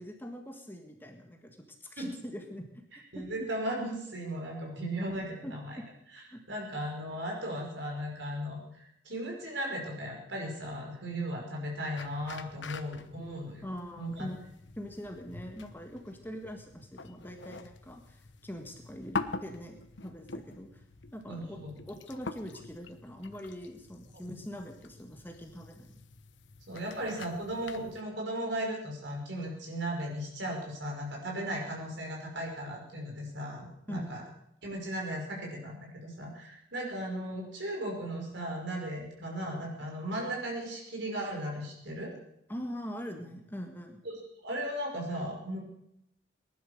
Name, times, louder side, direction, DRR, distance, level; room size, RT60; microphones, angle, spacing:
voice 1, 0.0-3.2 5.4-5.9 6.3-6.4 13.6-14.4 14.8-19.8 20.0-20.8 21.1-21.6 21.9-25.9 33.9-34.2 42.5-44.0, equal, 10° left, 3 dB, 1.6 m, -43 dB
voice 2, 3.1-5.8 6.5-13.6 14.0-14.3 21.3-21.7 24.3-24.4 26.7-34.2 34.6-42.1 44.4-45.6, right 1 dB, 65° right, 0 dB, 5.4 m, -36 dB
sound 1, 12.0-28.0, left 3 dB, 65° left, 1.0 m, -45 dB
19.0 x 11.0 x 6.5 m, 0.78 s
head